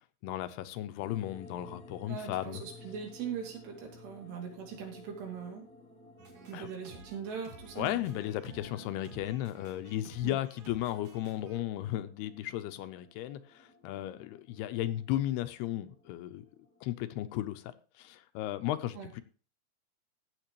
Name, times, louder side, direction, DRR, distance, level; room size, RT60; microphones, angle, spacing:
voice 1, 0.2-2.6 6.5-6.7 7.8-16.5 16.8-19.2, left 13 dB, 80° left, 2.7 m, -35 dB
sound 1, 1.0-16.9, left 2 dB, 5° left, 0.5 m, -55 dB
voice 2, 2.1-5.6 6.5-8.0 10.2-10.4 19.0-19.1, right 7 dB, 85° right, 4.5 m, -41 dB
sound 2, 6.2-11.6, right 3 dB, 45° right, 2.2 m, -53 dB
15.5 x 7.4 x 3.0 m
omnidirectional pair, 4.7 m